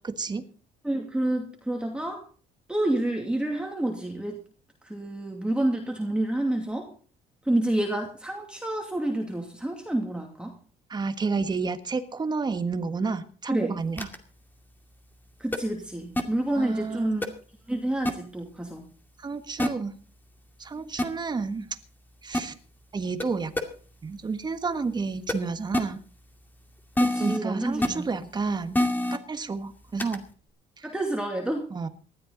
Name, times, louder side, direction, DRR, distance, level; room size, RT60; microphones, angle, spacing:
voice 1, 0.8-2.2 2.7-4.4 4.8-6.9 7.4-10.5 13.5-13.8 15.4-17.3 17.7-18.8 27.0-28.1 30.8-31.7, right 1 dB, 5° right, 2 dB, 2.5 m, -28 dB
voice 2, 10.9-14.1 16.6-17.2 19.2-19.9 20.6-21.7 22.2-22.5 22.9-23.5 24.0-26.0 27.2-28.8 29.1-30.2 30.8-30.9 31.7-31.9, right 4 dB, 25° right, 10 dB, 1.5 m, -30 dB
sound 1, 14.0-14.2 15.5-15.6 16.2-16.3 17.2-17.3 18.1-18.2 19.6-19.7 21.0-21.1 22.3-22.4 23.2-23.3 23.6-23.7 25.3-25.4 25.7-25.8 27.0-27.4 27.8-27.9 28.7-29.2 30.0-30.2, left 1 dB, 10° left, 2.3 m, -24 dB
19.5 x 13.0 x 4.0 m, 0.40 s
cardioid pair, 110°, 17 cm